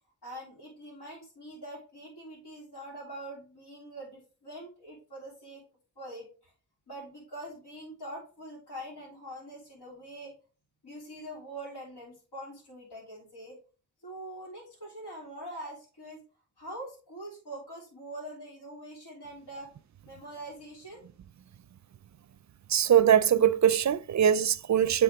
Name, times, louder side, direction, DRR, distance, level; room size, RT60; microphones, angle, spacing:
voice 1, 0.2-5.6 6.0-6.5 6.9-10.3 10.8-13.6 14.0-16.2 16.6-19.7 20.1-21.0, right 1 dB, 85° left, 3.0 m, -44 dB
voice 2, 22.7-25.0, right 9 dB, 45° right, 0.4 m, -22 dB
8.3 x 3.5 x 4.7 m
cardioid pair, 55°, 40 cm